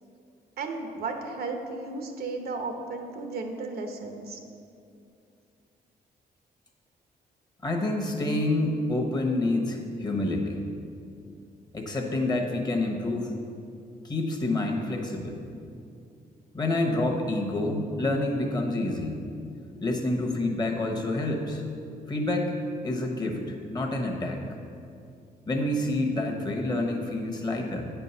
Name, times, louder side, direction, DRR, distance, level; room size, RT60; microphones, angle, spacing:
voice 1, 0.6-4.4, right 3 dB, 75° right, 4 dB, 0.9 m, -34 dB
voice 2, 7.6-10.6 11.7-13.3 14.0-15.4 16.5-19.2 19.8-21.6 22.1-22.6 22.8-24.4 25.5-27.9, left 2 dB, 25° left, 2 dB, 1.0 m, -28 dB
9.1 x 4.5 x 5.5 m, 2.5 s
cardioid pair, 115°, 16 cm